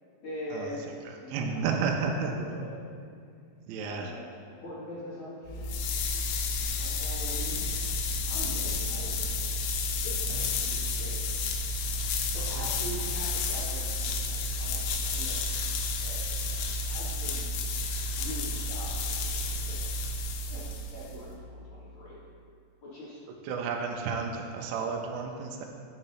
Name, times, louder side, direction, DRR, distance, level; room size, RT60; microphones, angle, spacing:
voice 1, 0.2-1.9 2.3-2.9 3.8-5.6 6.7-7.8 8.3-9.6 10.0-11.2 12.3-15.4 16.0-16.2 16.5-16.6 16.9-17.4 18.1-20.0 20.5-22.2 22.8-23.2, equal, 60° left, -9 dB, 2.2 m, -43 dB
voice 2, 1.3-2.3 3.7-4.1 10.3-10.5 12.6-12.7 23.4-25.7, right 5 dB, 85° right, 1 dB, 2.9 m, -32 dB
sound 1, 5.5-21.2, left 3 dB, 85° left, 3.0 m, -31 dB
6.5 x 4.8 x 5.7 m, 2.3 s
omnidirectional pair, 5.3 m